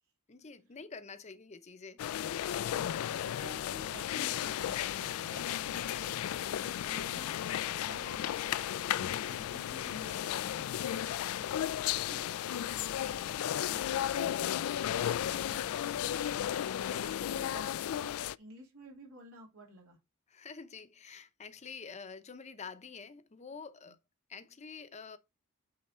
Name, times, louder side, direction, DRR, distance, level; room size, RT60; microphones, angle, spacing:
voice 1, 0.3-2.0 20.3-24.0 24.3-25.2, left 5 dB, 30° left, 0.6 m, -47 dB
sound 1, 2.0-18.3, left 11 dB, 85° left, 0.3 m, -34 dB
voice 2, 2.5-7.3 7.6-8.4 8.6-16.3 16.9-20.0 23.8-23.9, right 1 dB, 90° right, 2.8 m, -52 dB
8.6 x 3.5 x 4.2 m
head